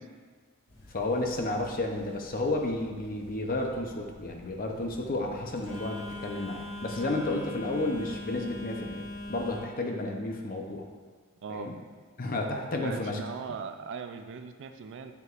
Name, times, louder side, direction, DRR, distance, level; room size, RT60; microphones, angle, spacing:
Telephone, 0.7-9.6, left 2 dB, 75° left, 1.6 m, -43 dB
voice 1, 0.9-9.0 9.3-10.8 11.5-11.8 12.2-13.2 13.5-13.6, left 2 dB, 40° left, 2 dB, 0.7 m, -32 dB
voice 2, 11.4-11.7 12.8-15.1, right 5 dB, 55° right, 8 dB, 0.4 m, -39 dB
6.8 x 6.7 x 2.5 m, 1.5 s
head